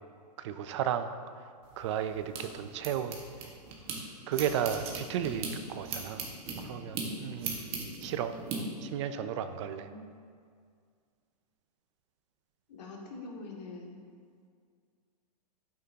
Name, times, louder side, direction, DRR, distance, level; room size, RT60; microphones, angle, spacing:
voice 1, 0.4-1.1 1.8-3.2 4.3-6.2 6.6-7.6 8.0-8.3 8.8-9.9, right 9 dB, 45° right, 10 dB, 0.5 m, -33 dB
sound 1, 1.6-4.0 4.3-8.6, right 4 dB, 30° right, 1.5 m, -39 dB
voice 2, 9.7-10.1 12.7-14.0, left 3 dB, 75° left, -2 dB, 2.4 m, -44 dB
11.5 x 9.4 x 2.9 m, 2.1 s
hypercardioid pair, 150°, 21 cm